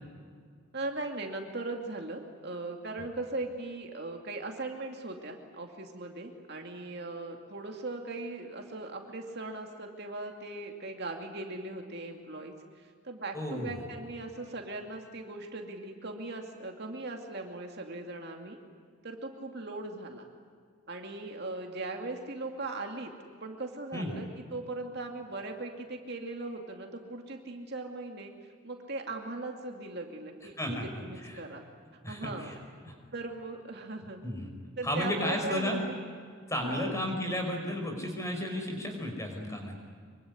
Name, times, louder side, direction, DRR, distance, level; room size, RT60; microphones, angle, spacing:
voice 1, 0.7-18.6 19.0-20.3 20.9-23.1 23.4-28.3 28.6-31.7 32.1-32.5 33.1-34.2 34.8-36.0 36.6-37.0, right 2 dB, 50° right, 3 dB, 2.4 m, -39 dB
voice 2, 13.3-13.8 23.9-24.1 30.6-30.9 31.2-31.4 32.0-32.6 32.8-32.9 34.2-34.5 34.8-35.8 36.5-39.8, left 1 dB, 15° left, 3 dB, 5.4 m, -33 dB
25.5 x 24.5 x 9.7 m, 2.1 s
head